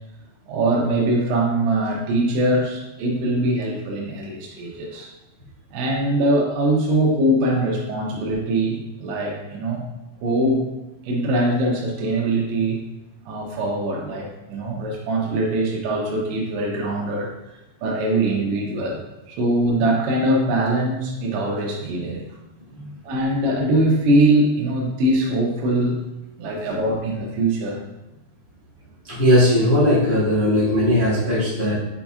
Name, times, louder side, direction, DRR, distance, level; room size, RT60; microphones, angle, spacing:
voice 1, 0.5-5.1 5.7-9.8 10.2-10.6 11.0-12.8 13.3-17.3 17.8-22.2 23.0-26.0 26.4-27.8, right 1 dB, 85° right, -1 dB, 3.2 m, -22 dB
voice 2, 29.0-31.8, left 1 dB, 45° left, -10 dB, 0.8 m, -18 dB
7.1 x 5.7 x 2.4 m, 0.96 s
omnidirectional pair, 5.2 m